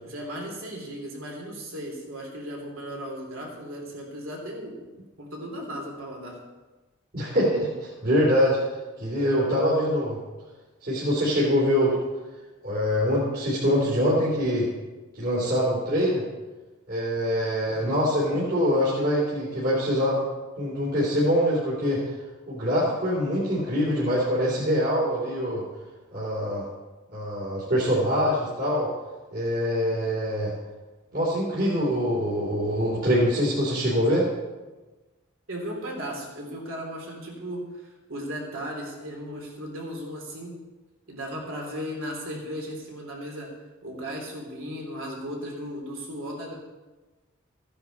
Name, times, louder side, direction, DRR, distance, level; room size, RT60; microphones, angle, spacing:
voice 1, 0.0-4.8 5.2-6.4 17.7-18.0 35.5-40.5 41.1-43.5 43.8-46.6, equal, 70° right, -1 dB, 3.4 m, -36 dB
voice 2, 7.1-8.6 9.0-10.2 10.8-11.9 12.6-14.7 15.1-16.2 16.9-20.2 20.6-22.0 22.5-25.6 26.1-26.7 27.1-28.9 29.3-30.5 31.1-34.3, equal, 50° right, -7 dB, 3.4 m, -24 dB
15.0 x 9.8 x 4.2 m, 1.2 s
head